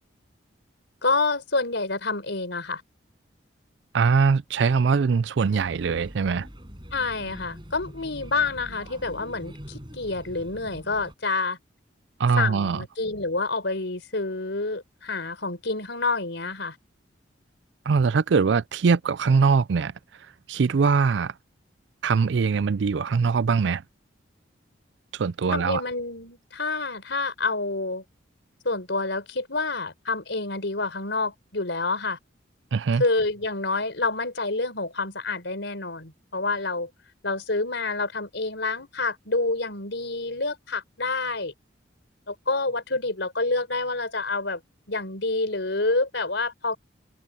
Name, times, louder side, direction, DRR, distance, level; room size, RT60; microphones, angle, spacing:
voice 1, 1.0-2.8 6.9-11.6 12.4-16.8 25.5-28.0 28.6-32.2 32.9-36.9 37.2-41.5 42.3-44.6 44.9-46.8, left 3 dB, 70° left, 4.1 m, -28 dB
voice 2, 3.9-6.5 12.2-12.8 17.9-19.9 20.5-21.3 22.0-23.8 25.1-25.8 32.7-33.0, right 5 dB, 70° right, 0.4 m, -22 dB
Male speech man speaking / Child speech kid speaking / Chatter, 5.4-11.1, equal, 25° right, 7.6 m, -43 dB
head